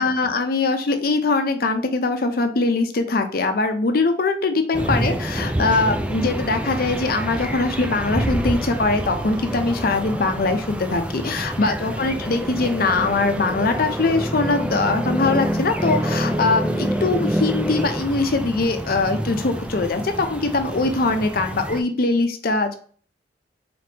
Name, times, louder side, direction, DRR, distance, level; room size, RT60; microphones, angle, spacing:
voice 1, 0.0-22.8, left 3 dB, 50° left, 7 dB, 0.6 m, -22 dB
sound 1, 4.7-21.8, right 1 dB, 5° right, 0.3 m, -27 dB
4.2 x 3.4 x 2.8 m, 0.44 s
head